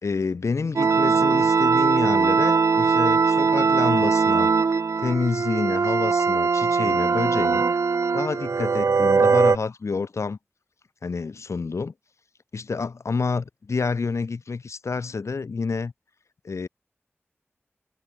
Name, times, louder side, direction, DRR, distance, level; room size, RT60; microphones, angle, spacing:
voice 1, 0.0-4.5 5.0-7.6 8.1-10.4 11.0-11.9 12.5-15.9 16.4-16.7, left 4 dB, 85° left, 1.2 m, -28 dB
sound 1, 0.8-9.6, right 5 dB, 85° right, 0.6 m, -20 dB
wide cardioid pair, 50°, 5 cm